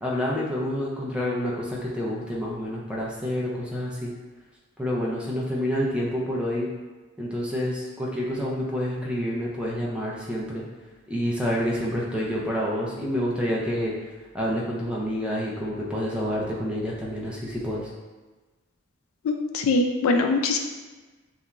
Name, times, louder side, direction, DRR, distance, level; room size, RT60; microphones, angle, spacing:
voice 1, 0.0-4.1 4.8-6.7 7.2-10.6 11.1-13.9 14.3-17.9, equal, 5° right, -5 dB, 0.4 m, -28 dB
voice 2, 19.2-20.6, left 3 dB, 90° left, 5 dB, 0.3 m, -22 dB
2.9 x 2.2 x 2.4 m, 1.3 s
head